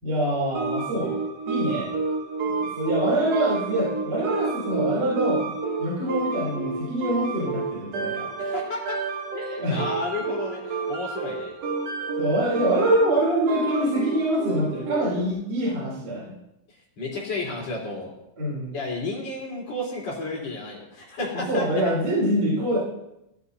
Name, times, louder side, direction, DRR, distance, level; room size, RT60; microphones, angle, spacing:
voice 1, 0.0-1.2 1.4-1.9 2.4-5.5 5.8-8.3 9.6-9.8 12.2-16.4 18.4-18.7 21.3-22.8, right 1 dB, 25° right, -6 dB, 3.8 m, -25 dB
sound 1, 0.5-15.3, right 4 dB, 60° right, 1.8 m, -30 dB
voice 2, 8.4-9.0 9.3-11.5 16.7-18.1 18.7-21.9, left 2 dB, 45° left, -4 dB, 4.7 m, -32 dB
17.0 x 14.0 x 2.8 m, 0.86 s
omnidirectional pair, 4.4 m